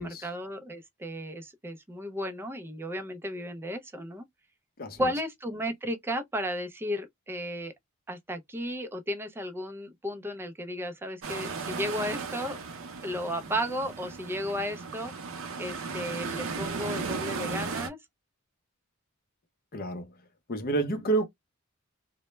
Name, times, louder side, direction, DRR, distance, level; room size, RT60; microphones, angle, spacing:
voice 1, 0.0-4.2 5.0-7.7 8.1-12.6 13.0-15.1 15.6-18.0, equal, 10° right, 0.4 m, -34 dB
sound 1, 11.2-17.9, right 4 dB, 65° right, 0.5 m, -36 dB
voice 2, 19.7-20.1 20.5-21.3, right 3 dB, 45° left, 0.6 m, -29 dB
2.1 x 2.0 x 2.9 m
head